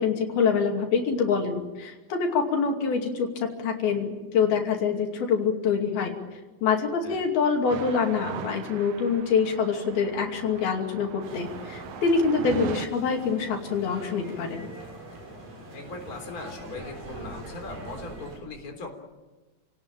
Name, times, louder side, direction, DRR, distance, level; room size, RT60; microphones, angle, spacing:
voice 1, 0.0-6.1 6.6-14.7, left 5 dB, 80° left, 2 dB, 4.5 m, -25 dB
sound 1, 7.7-12.9, right 9 dB, 90° right, 1.3 m, -38 dB
sound 2, 11.2-18.4, right 1 dB, 65° right, 7.9 m, -43 dB
voice 2, 15.7-18.9, left 3 dB, 25° left, 3 dB, 3.8 m, -39 dB
29.5 x 18.5 x 9.0 m, 1.2 s
omnidirectional pair, 4.3 m